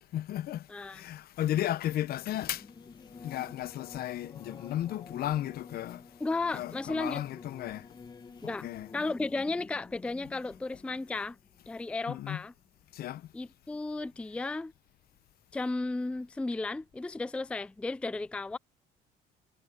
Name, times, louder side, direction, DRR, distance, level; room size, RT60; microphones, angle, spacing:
voice 1, 0.1-2.7 3.2-6.1 6.5-7.9 8.4-8.9 12.1-12.4 12.9-13.3, left 13 dB, 65° left, 0.9 m, -34 dB
voice 2, 0.7-1.0 6.2-7.2 8.4-8.7 8.9-11.4 11.7-12.5 13.3-14.7 15.5-18.6, left 3 dB, 5° left, 0.4 m, -34 dB
Singing / Musical instrument, 2.2-12.3, left 4 dB, 25° left, 1.5 m, -51 dB
cardioid pair, 110°, 17 cm